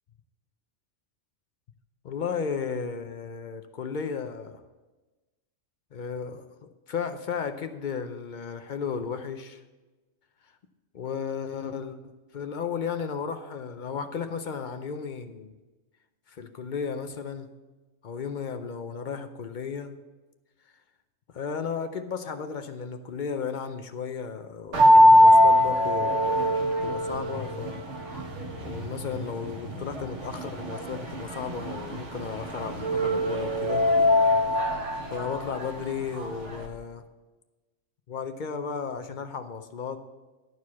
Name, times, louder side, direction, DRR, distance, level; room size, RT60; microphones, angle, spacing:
voice 1, 2.0-4.6 5.9-9.6 10.9-12.0 12.3-15.5 16.3-17.5 18.0-20.0 21.3-27.8 28.6-33.9 35.1-37.0 38.1-40.0, left 6 dB, 55° left, 8 dB, 0.5 m, -34 dB
sound 1, 24.7-36.6, left 1 dB, 60° right, 1.6 m, -23 dB
12.0 x 4.7 x 7.1 m, 1.2 s
omnidirectional pair, 1.4 m